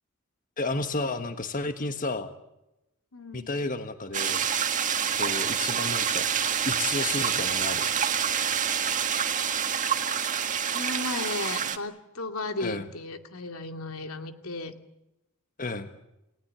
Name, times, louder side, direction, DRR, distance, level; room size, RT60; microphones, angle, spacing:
voice 1, 0.6-2.3 3.3-4.4 5.2-6.2 6.6-7.9 12.6-12.9 15.6-15.9, left 2 dB, 40° left, 8 dB, 1.4 m, -32 dB
voice 2, 3.1-3.5 10.7-14.7, left 2 dB, 80° left, 6 dB, 2.5 m, -35 dB
sound 1, 4.1-11.8, right 7 dB, 35° right, 1.8 m, -27 dB
29.5 x 19.0 x 8.7 m, 0.91 s
head